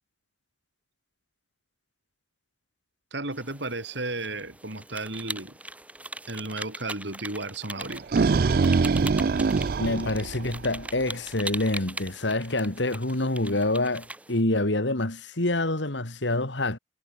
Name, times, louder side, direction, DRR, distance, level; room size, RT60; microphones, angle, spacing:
voice 1, 3.1-5.6 6.3-8.1, right 2 dB, 70° right, 4.7 m, -34 dB
sound 1, 3.3-14.4, right 2 dB, 5° right, 3.7 m, -40 dB
sound 2, 7.8-11.0, right 4 dB, 50° right, 0.4 m, -23 dB
voice 2, 9.8-16.8, left 2 dB, 70° left, 2.6 m, -26 dB
head